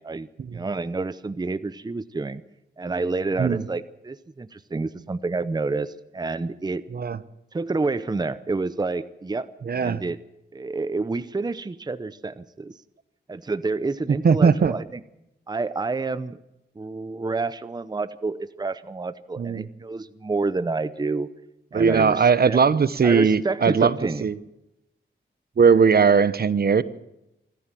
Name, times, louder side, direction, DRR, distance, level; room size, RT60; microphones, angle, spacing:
voice 1, 0.0-2.4 2.8-6.8 7.5-10.2 10.5-12.8 13.3-15.0 15.5-16.4 16.8-21.3 21.7-22.6 23.0-24.3, right 3 dB, 20° right, 14 dB, 0.8 m, -29 dB
voice 2, 9.7-10.0 14.2-14.7 19.4-19.7 21.7-23.9 24.2-24.3 25.6-26.8, right 6 dB, 55° right, 16 dB, 1.0 m, -19 dB
25.5 x 13.5 x 7.6 m, 0.88 s
wide cardioid pair, 115°, 19 cm